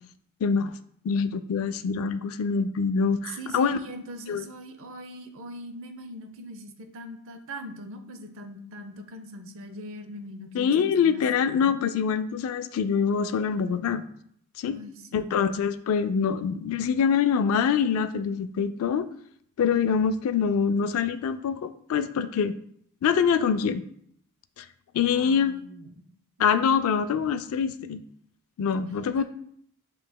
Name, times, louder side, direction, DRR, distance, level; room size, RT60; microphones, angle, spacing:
voice 1, 0.4-0.7 1.0-3.8 4.3-4.5 10.5-14.0 14.6-14.8 15.1-19.1 19.6-22.5 23.0-23.8 24.6-24.7 24.9-25.5 26.4-28.0 28.6-29.2, left 6 dB, 65° left, 12 dB, 0.3 m, -25 dB
voice 2, 3.3-11.7 14.7-15.3 25.1-26.0 27.1-27.2 28.7-28.8 29.2-29.3, right 1 dB, 60° right, 7 dB, 0.6 m, -41 dB
7.1 x 3.1 x 2.2 m, 0.67 s
head